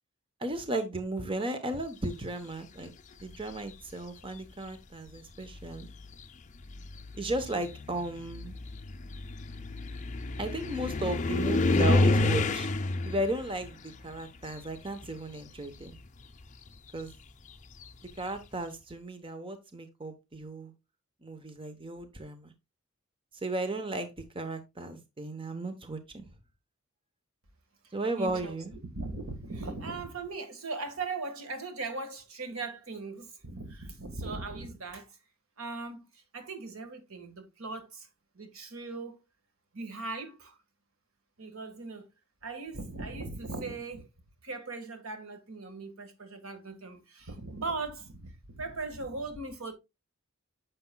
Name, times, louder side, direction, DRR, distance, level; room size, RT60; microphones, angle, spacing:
voice 1, 0.4-2.9 3.2-5.9 7.1-8.5 10.4-12.7 13.0-16.0 16.9-17.1 18.0-20.7 21.2-22.5 23.3-26.3 27.9-28.7, right 1 dB, 25° right, 0.9 m, -35 dB
sound 1, 3.2-3.7 4.7-4.8 5.4-15.3 15.6-18.2, left 2 dB, 35° left, 0.6 m, -30 dB
voice 2, 27.8-28.5 28.9-35.2 35.6-38.1 38.3-39.2 39.7-40.6 41.4-42.1 42.4-44.1 44.4-49.7, right 3 dB, 80° right, 1.6 m, -39 dB
9.7 x 6.8 x 2.3 m
head